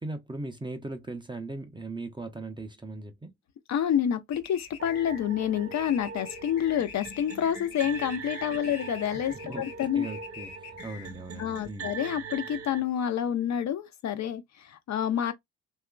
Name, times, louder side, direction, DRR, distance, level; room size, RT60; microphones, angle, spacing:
voice 1, 0.0-3.3 9.3-9.6 9.9-11.9, right 2 dB, 10° right, 0.5 m, -39 dB
voice 2, 3.7-10.1 11.4-15.3, left 9 dB, 40° left, 0.5 m, -28 dB
sound 1, 4.3-11.4, left 7 dB, 75° left, 0.8 m, -46 dB
sound 2, 4.8-12.8, right 5 dB, 30° right, 0.9 m, -42 dB
2.8 x 2.3 x 2.3 m
hypercardioid pair, 50°, 43 cm